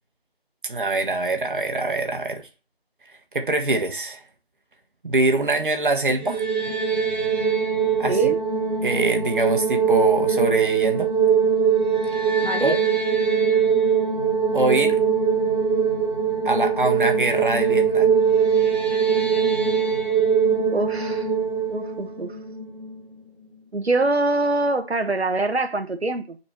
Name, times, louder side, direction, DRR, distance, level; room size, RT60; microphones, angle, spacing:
voice 1, 0.7-2.4 3.3-4.2 5.0-6.4 8.0-8.3 8.8-11.1 12.6-12.8 14.5-15.0 16.4-18.1, right 2 dB, 55° right, 1.3 m, -23 dB
sound 1, 6.2-23.2, right 6 dB, 10° left, 1.0 m, -22 dB
voice 2, 12.4-12.7 20.7-21.3 21.7-22.4 23.7-26.4, right 2 dB, 85° right, 1.2 m, -24 dB
7.2 x 4.3 x 4.5 m
figure-of-eight pair, 170°, 31 cm